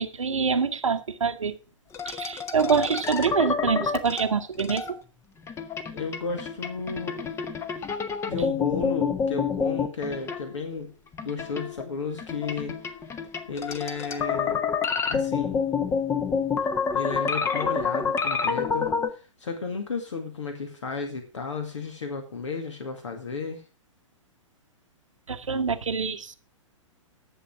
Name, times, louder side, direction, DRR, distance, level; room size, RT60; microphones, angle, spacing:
voice 1, 0.0-1.5 2.1-4.8 25.3-26.4, right 5 dB, 75° right, 1.1 m, -25 dB
sound 1, 1.9-5.0 5.5-10.7 11.1-19.1, left 6 dB, 15° left, 1.0 m, -28 dB
voice 2, 5.9-7.3 8.3-10.9 11.2-13.0 13.5-14.6 15.1-15.6 16.9-23.6, left 4 dB, 65° left, 2.2 m, -33 dB
11.5 x 7.3 x 6.0 m
figure-of-eight pair, 110°, 17 cm